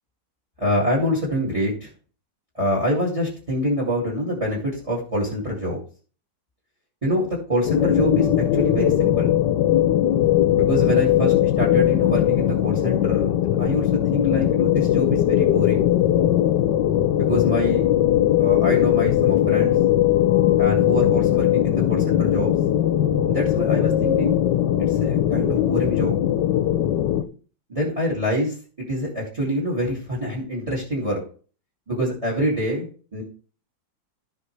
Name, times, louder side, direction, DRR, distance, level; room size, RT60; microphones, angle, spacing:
voice 1, 0.6-1.9 2.5-5.8 7.0-9.3 10.5-15.8 17.2-17.9 18.4-19.8 20.6-22.5 23.3-24.4 24.9-26.2 27.7-31.2 31.9-32.9 33.1-33.2, equal, 15° right, -2 dB, 2.2 m, -26 dB
sound 1, 7.7-27.2, left 12 dB, 70° left, 1.3 m, -19 dB
15.5 x 5.2 x 3.3 m, 0.40 s
omnidirectional pair, 2.1 m